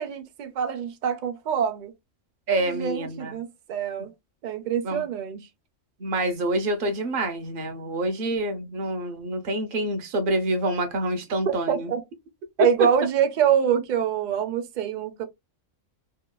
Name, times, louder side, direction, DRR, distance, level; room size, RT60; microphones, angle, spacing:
voice 1, 0.0-1.9 2.6-4.1 4.4-5.5 11.5-12.0 12.6-15.3, right 8 dB, 90° right, 0.4 m, -25 dB
voice 2, 2.5-3.4 4.8-5.1 6.0-11.9, right 1 dB, 50° right, 0.7 m, -27 dB
2.9 x 2.2 x 2.2 m
omnidirectional pair, 1.4 m